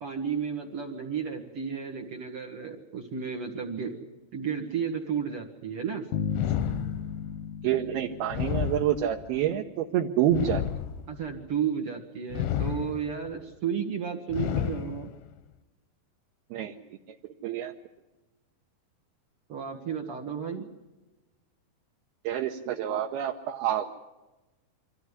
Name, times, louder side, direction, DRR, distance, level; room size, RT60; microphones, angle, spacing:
voice 1, 0.0-3.9 4.3-6.1 6.5-6.6 11.1-15.1 19.5-20.7, right 7 dB, 55° right, 2 dB, 1.7 m, -33 dB
Bass guitar, 6.1-9.2, left 7 dB, 65° left, 1.9 m, -35 dB
sound 1, 6.3-7.4 8.3-9.4 10.3-11.4 12.3-13.3 14.3-15.3, left 10 dB, 90° left, 3.3 m, -31 dB
voice 2, 7.6-10.6 16.5-16.7 17.4-17.7 22.2-23.9, right 11 dB, 75° right, 2 dB, 2.6 m, -27 dB
24.5 x 15.0 x 9.8 m, 1.1 s
omnidirectional pair, 5.0 m